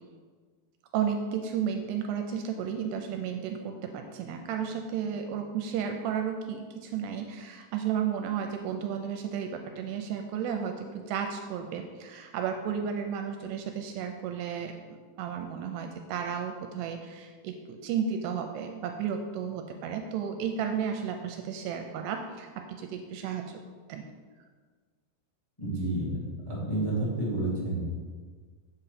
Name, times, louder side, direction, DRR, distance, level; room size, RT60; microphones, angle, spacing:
voice 1, 0.9-23.6 23.9-24.1, right 7 dB, 85° right, 5 dB, 2.5 m, -33 dB
voice 2, 25.6-26.1 26.4-27.9, right 2 dB, 10° left, -6 dB, 1.5 m, -30 dB
7.8 x 7.6 x 4.2 m, 1.5 s
omnidirectional pair, 5.0 m